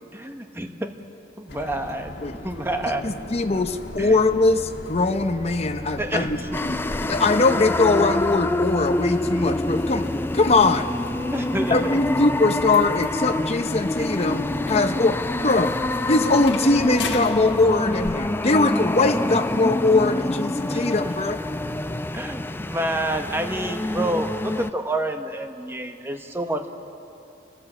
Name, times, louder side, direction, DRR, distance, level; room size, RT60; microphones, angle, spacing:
voice 1, 0.1-0.9 1.4-2.2 2.4-3.1 4.0-4.2 6.0-6.6 11.3-12.0 20.7-20.9 22.1-26.7, right 1 dB, 15° right, 5 dB, 1.1 m, -28 dB
sound 1, 1.5-18.1, left 2 dB, 70° left, 1.5 m, -37 dB
voice 2, 3.0-10.0 10.3-10.9 11.7-15.2 15.4-15.7 16.1-21.4, left 3 dB, 35° left, 6 dB, 0.7 m, -21 dB
sound 2, 6.5-24.7, left 2 dB, 10° left, 0.4 m, -27 dB
29.0 x 13.0 x 7.5 m, 2.7 s
head